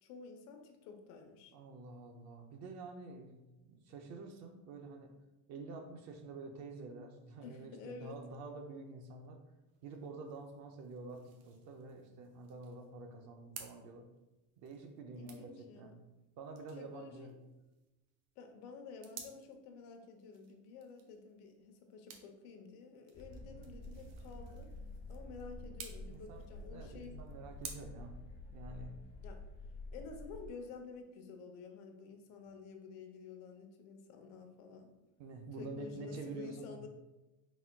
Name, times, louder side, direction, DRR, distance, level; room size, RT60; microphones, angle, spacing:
voice 1, 0.0-1.5 7.4-8.2 15.1-16.0 16.8-17.3 18.4-24.7 25.1-27.2 29.2-29.4 29.9-34.9 35.6-36.9, left 5 dB, 90° left, 5 dB, 0.8 m, -51 dB
voice 2, 1.5-5.1 5.5-9.4 9.8-14.1 14.6-16.0 16.4-17.4 23.4-23.5 26.1-26.5 26.7-28.2 28.5-29.0 35.2-36.9, right 3 dB, 40° right, 5 dB, 0.4 m, -48 dB
sound 1, 9.7-27.7, right 7 dB, 75° right, 0.8 m, -56 dB
sound 2, 23.1-30.5, left 2 dB, 20° left, 0.4 m, -49 dB
4.1 x 2.2 x 4.3 m, 1.0 s
cardioid pair, 160°, 43 cm